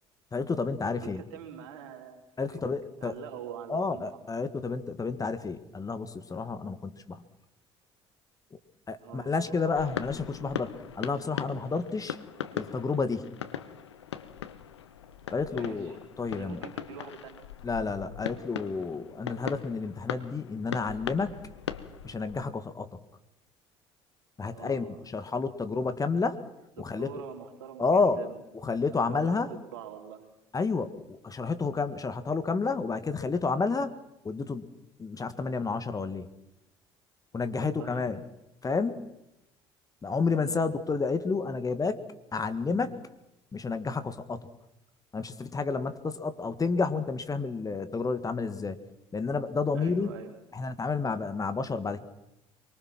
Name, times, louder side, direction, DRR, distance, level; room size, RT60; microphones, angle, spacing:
voice 1, 0.3-1.2 2.4-3.1 3.7-7.2 8.9-12.2 12.6-13.3 15.3-16.6 17.6-21.3 22.0-22.9 24.4-24.8 25.1-26.4 26.8-27.1 27.8-28.2 28.6-29.5 30.5-33.9 34.2-34.7 35.0-36.3 37.3-38.2 38.6-39.1 40.0-42.0 42.3-43.0 43.5-44.5 45.1-48.8 49.1-50.1 50.5-52.0, left 4 dB, 25° left, 9 dB, 1.9 m, -30 dB
voice 2, 0.8-2.2 2.5-2.6 3.0-4.2 9.0-9.7 15.5-16.0 16.3-17.5 24.5-25.0 26.8-28.4 28.9-30.2 37.4-38.1 40.3-40.7 49.7-50.4, right 9 dB, 65° right, 3 dB, 4.1 m, -44 dB
sound 1, 9.7-22.4, left 9 dB, 80° left, 1.1 m, -40 dB
24.5 x 24.0 x 6.1 m, 0.90 s
figure-of-eight pair, 55°, 14 cm